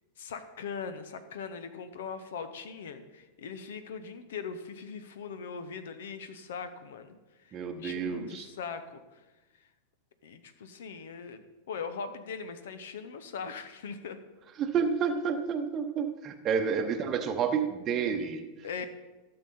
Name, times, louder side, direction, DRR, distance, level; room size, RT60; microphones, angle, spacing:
voice 1, 0.2-9.2 10.2-14.2 18.6-18.9, left 5 dB, 60° left, 11 dB, 0.9 m, -40 dB
voice 2, 7.5-8.5 14.6-18.4, right 6 dB, 30° right, 5 dB, 0.9 m, -30 dB
15.5 x 6.8 x 4.3 m, 1.2 s
figure-of-eight pair, 90°, 0 cm